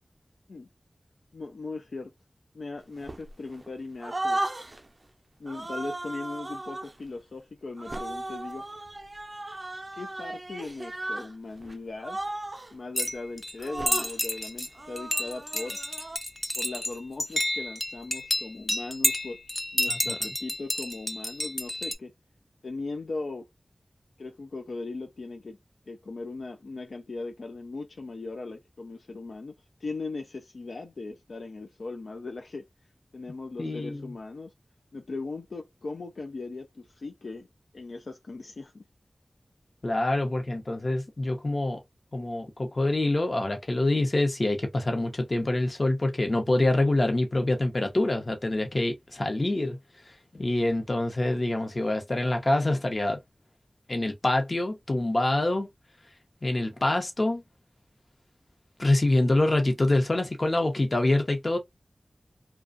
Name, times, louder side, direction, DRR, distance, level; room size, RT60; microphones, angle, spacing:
voice 1, 1.3-2.1 2.5-4.4 5.4-8.6 9.9-12.2 12.7-15.8 16.6-19.4 19.7-22.1 22.6-23.5 24.2-25.6 25.9-29.5 29.8-32.7 33.1-34.5 34.9-37.5 37.7-38.8, left 3 dB, 90° left, 0.3 m, -38 dB
sound 1, 3.0-3.7 4.0-4.9 5.5-6.9 7.8-11.3 11.6-11.7 12.0-12.7 13.6-14.2 14.7-16.2, right 2 dB, 45° right, 0.4 m, -35 dB
sound 2, 13.0-14.7 15.0-21.9, left 1 dB, 15° left, 0.4 m, -30 dB
voice 2, 33.6-34.1 39.8-41.8 42.1-49.8 50.3-53.2 53.9-55.7 56.4-57.4 58.8-61.6, left 2 dB, 50° left, 0.8 m, -26 dB
2.5 x 2.2 x 2.4 m
wide cardioid pair, 50°, 0 cm